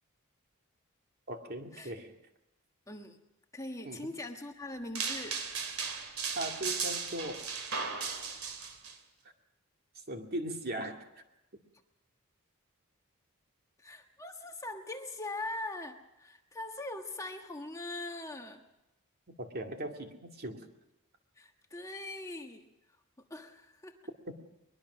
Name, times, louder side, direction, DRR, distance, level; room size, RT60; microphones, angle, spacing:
voice 1, 1.3-2.1 3.8-4.1 6.3-7.5 9.9-11.2 19.3-20.6, right 1 dB, 45° right, 3 dB, 2.3 m, -39 dB
voice 2, 2.9-3.2 3.5-5.4 13.8-18.6 21.4-22.7 23.3-24.0, left 2 dB, 15° left, 3 dB, 1.4 m, -41 dB
sound 1, 5.0-8.9, right 5 dB, 75° right, 2.9 m, -36 dB
22.5 x 21.5 x 6.2 m, 0.92 s
head